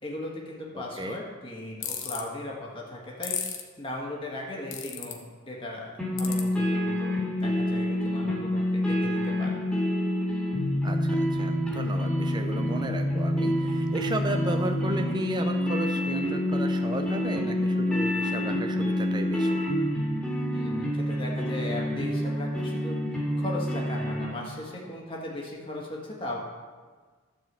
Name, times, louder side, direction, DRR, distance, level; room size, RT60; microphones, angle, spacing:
voice 1, 0.0-3.4 3.8-9.6 20.5-23.0 23.4-26.4, left 1 dB, 25° left, -2 dB, 1.7 m, -37 dB
voice 2, 0.7-1.2 10.8-19.6, right 1 dB, 20° right, 5 dB, 0.6 m, -34 dB
sound 1, 1.8-2.2 3.2-3.6 4.7-5.1 6.2-6.4, left 9 dB, 55° left, 1.1 m, -32 dB
sound 2, 6.0-24.2, left 1 dB, ahead, 2.2 m, -27 dB
12.5 x 4.7 x 7.4 m, 1.5 s
head